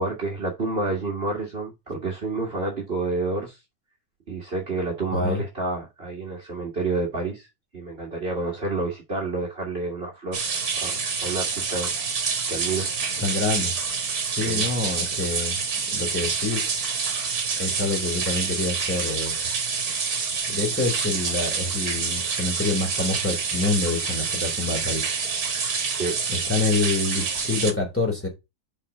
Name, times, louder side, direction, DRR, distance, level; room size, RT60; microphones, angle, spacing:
voice 1, 0.0-3.6 4.3-7.5 7.7-10.4 10.8-11.9 12.5-12.9 14.3-14.7 25.9-26.2, right 3 dB, 35° right, 1.9 m, -29 dB
voice 2, 5.1-5.4 13.2-13.7 14.3-15.6 15.9-16.8 17.6-19.6 20.5-25.0 26.3-28.3, left 3 dB, 5° left, 3.2 m, -27 dB
sound 1, 10.3-27.7, right 5 dB, 60° right, 1.9 m, -27 dB
5.7 x 5.2 x 5.5 m
omnidirectional pair, 1.9 m